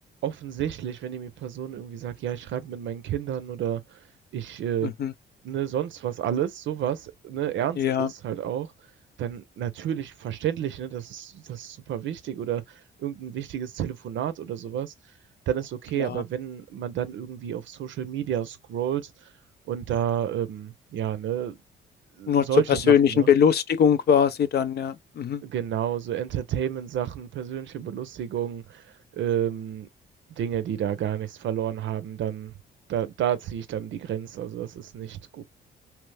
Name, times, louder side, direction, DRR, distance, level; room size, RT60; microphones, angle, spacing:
voice 1, 0.2-4.1 4.3-4.9 5.4-8.7 9.2-14.9 15.5-19.3 19.7-21.6 22.2-23.3 25.4-29.9 30.4-32.5 32.9-35.4, right 10 dB, 70° right, 0.6 m, -30 dB
voice 2, 4.8-5.1 7.8-8.1 16.0-16.2 22.3-25.4, left 8 dB, 55° left, 0.5 m, -21 dB
3.0 x 2.1 x 3.2 m
cardioid pair, 90°, 20 cm